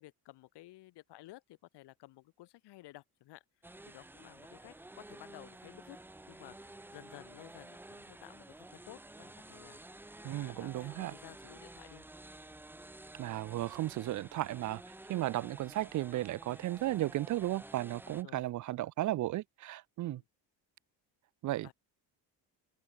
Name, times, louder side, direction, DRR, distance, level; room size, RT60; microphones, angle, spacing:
voice 1, 0.0-3.4 3.9-6.0 6.3-12.1 18.1-18.5 20.0-20.2 21.6-21.7, left 17 dB, 70° left, 2.4 m, -55 dB
sound 1, 3.6-18.2, right 2 dB, 5° right, 0.8 m, -52 dB
voice 2, 10.2-11.1 13.2-14.8 15.1-20.2 21.4-21.7, right 15 dB, 45° right, 0.5 m, -35 dB
cardioid pair, 135°, 42 cm